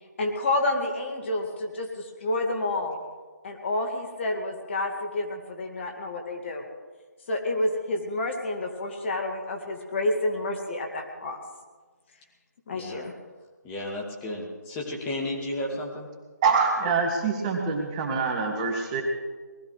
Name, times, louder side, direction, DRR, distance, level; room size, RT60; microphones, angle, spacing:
voice 1, 0.2-3.0 3.4-6.6 7.3-11.4 12.7-13.1, left 2 dB, 40° left, 2 dB, 2.2 m, -29 dB
voice 2, 12.7-13.0 13.6-16.1, left 1 dB, 15° left, -1 dB, 2.4 m, -33 dB
voice 3, 16.4-19.0, right 4 dB, 20° right, 2 dB, 1.7 m, -25 dB
19.5 x 14.0 x 4.9 m, 1.4 s
figure-of-eight pair, 150°, 10 cm